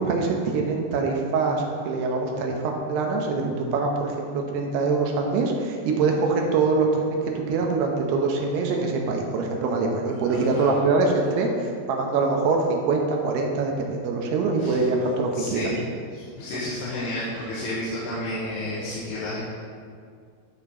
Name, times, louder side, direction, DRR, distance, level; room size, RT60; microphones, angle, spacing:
voice 1, 0.0-15.7, right 3 dB, 80° right, 1 dB, 3.0 m, -24 dB
voice 2, 10.1-10.7 14.6-14.9 15.3-15.8 16.1-19.4, left 1 dB, 80° left, -8 dB, 3.4 m, -32 dB
13.0 x 4.5 x 5.4 m, 2.1 s
omnidirectional pair, 4.7 m